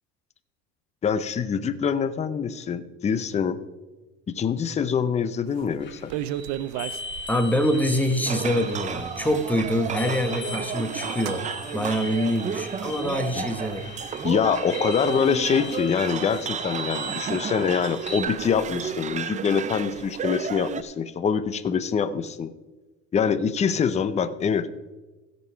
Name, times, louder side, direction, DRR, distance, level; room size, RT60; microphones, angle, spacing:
voice 1, 1.0-3.6 4.3-6.1 13.3-13.5 14.2-22.5 23.1-24.7, left 6 dB, 25° left, 11 dB, 0.6 m, -25 dB
sound 1, 5.6-5.7 5.9-7.6 8.3-8.4 8.6-10.0 10.3-10.7 11.1-11.4, right 12 dB, 75° right, 0.6 m, -33 dB
sound 2, 5.8-18.2, left 2 dB, 40° left, 1.7 m, -39 dB
voice 2, 7.3-11.5 11.7-13.8, equal, 5° left, 7 dB, 1.1 m, -25 dB
sound 3, 8.2-20.8, right 7 dB, 25° right, 0.5 m, -32 dB
16.0 x 5.3 x 5.6 m, 1.2 s
cardioid pair, 125°, 29 cm